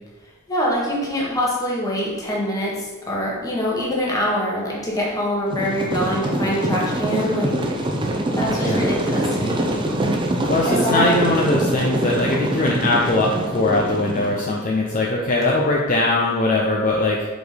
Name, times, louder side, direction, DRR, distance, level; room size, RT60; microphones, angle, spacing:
voice 1, 0.5-7.6 8.3-9.7 10.6-11.1, equal, 15° left, -4 dB, 1.5 m, -24 dB
sound 1, 5.5-14.6, right 1 dB, 25° right, 0.6 m, -24 dB
voice 2, 8.4-8.9 10.5-17.3, left 2 dB, 40° left, -2 dB, 0.6 m, -21 dB
4.9 x 4.1 x 5.1 m, 1.2 s
head